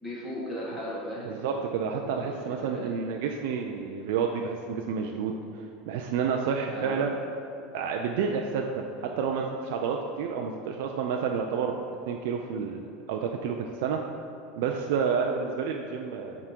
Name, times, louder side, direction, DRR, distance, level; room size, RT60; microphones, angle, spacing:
voice 1, 0.0-1.4 2.1-2.9 6.7-7.1, equal, 10° left, -7 dB, 1.6 m, -37 dB
voice 2, 1.2-5.4 5.9-7.2 7.7-11.8 12.1-12.8 13.1-14.0 14.6-16.4, right 6 dB, 65° right, 2 dB, 0.4 m, -29 dB
8.6 x 3.6 x 4.5 m, 2.7 s
supercardioid pair, 175°, 0 cm